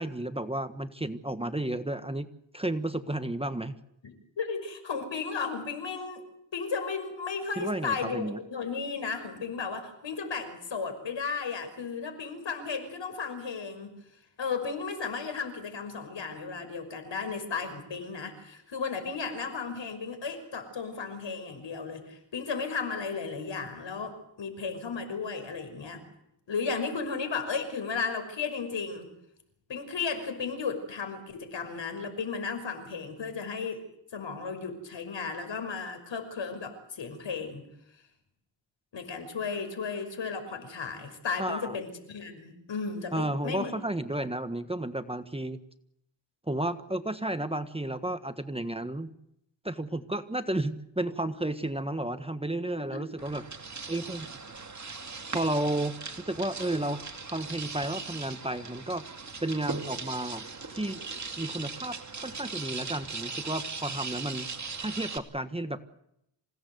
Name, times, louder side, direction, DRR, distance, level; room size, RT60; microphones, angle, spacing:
voice 1, 0.0-2.3 2.5-3.8 7.6-8.4 41.4-41.8 43.1-45.6 46.5-49.1 49.6-53.4 53.9-54.3 55.1-57.0 57.3-59.1 59.4-60.4 60.7-61.0 61.4-64.5 64.8-65.8, right 1 dB, 10° right, 9 dB, 1.4 m, -32 dB
voice 2, 4.0-6.2 6.5-14.0 14.4-26.0 26.5-29.1 29.7-33.9 34.1-37.7 38.9-43.7 52.8-53.0, left 5 dB, 70° left, 8 dB, 5.9 m, -34 dB
sound 1, 53.2-65.2, right 4 dB, 35° right, 2.5 m, -39 dB
27.5 x 17.5 x 8.0 m, 0.78 s
cardioid pair, 85°, 46 cm